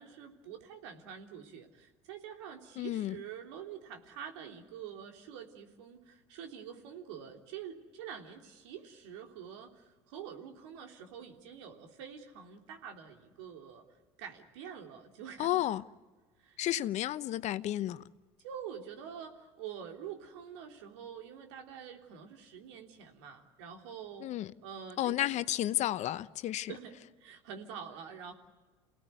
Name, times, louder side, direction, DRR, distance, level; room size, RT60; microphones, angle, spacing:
voice 1, 0.0-13.8 14.2-15.6 16.4-16.6 18.4-24.3 24.6-25.3 26.7-28.4, right 8 dB, 75° right, 3.3 m, -46 dB
voice 2, 2.8-3.2 15.4-15.8 16.6-18.0 24.2-24.5 25.0-26.7, left 13 dB, 50° left, 0.9 m, -32 dB
28.0 x 18.0 x 9.4 m
hypercardioid pair, 80°, 15 cm